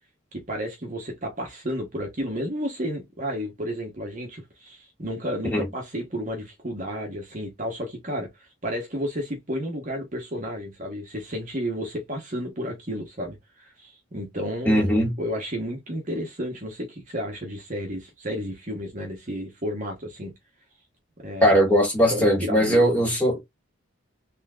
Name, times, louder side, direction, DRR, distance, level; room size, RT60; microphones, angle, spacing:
voice 1, 0.3-20.3 21.2-21.6 22.1-23.0, equal, 40° right, 1.1 m, -32 dB
voice 2, 14.7-15.1 21.4-23.4, equal, 10° left, 2.1 m, -20 dB
4.2 x 3.3 x 2.4 m
head